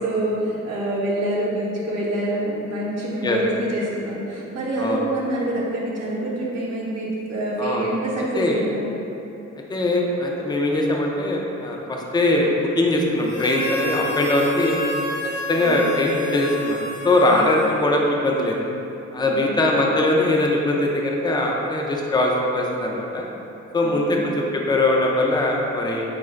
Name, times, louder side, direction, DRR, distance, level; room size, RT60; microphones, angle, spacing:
voice 1, 0.0-8.9 15.6-15.8 17.3-17.4 19.2-19.6 23.8-24.3, right 1 dB, 55° right, -6 dB, 0.8 m, -26 dB
voice 2, 7.6-8.0 8.3-8.6 9.7-14.8 15.5-16.8 17.0-18.6 19.1-23.3 23.7-26.0, left 1 dB, 15° left, -1 dB, 0.4 m, -21 dB
Harmonica, 13.2-18.1, left 1 dB, 80° left, 0.9 m, -30 dB
3.7 x 2.4 x 3.2 m, 3.0 s
cardioid pair, 90°, 30 cm